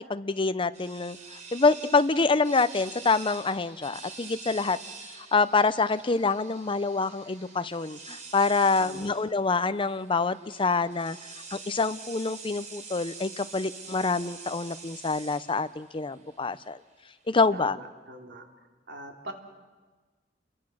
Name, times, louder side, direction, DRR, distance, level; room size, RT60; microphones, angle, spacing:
voice 1, 0.1-1.2 1.5-4.8 5.2-11.2 11.5-16.8 17.3-17.8, left 4 dB, 30° left, 13 dB, 0.7 m, -26 dB
sound 1, 0.7-17.6, right 4 dB, 40° right, 3.8 m, -46 dB
voice 2, 8.8-9.2 17.5-18.5 18.9-19.3, right 1 dB, 70° right, 2 dB, 3.1 m, -42 dB
29.0 x 22.5 x 6.4 m, 1.4 s
head